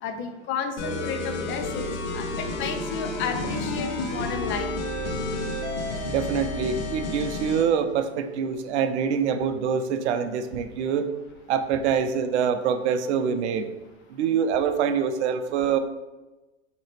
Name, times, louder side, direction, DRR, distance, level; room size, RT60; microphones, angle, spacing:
voice 1, 0.0-4.7, left 6 dB, 35° left, 6 dB, 0.5 m, -32 dB
sound 1, 0.8-7.7, left 2 dB, 75° left, 1.0 m, -31 dB
voice 2, 6.1-11.1 11.5-13.7 14.1-15.8, right 7 dB, 70° right, 9 dB, 0.5 m, -25 dB
5.4 x 2.9 x 3.2 m, 1.1 s
hypercardioid pair, 100°, 35 cm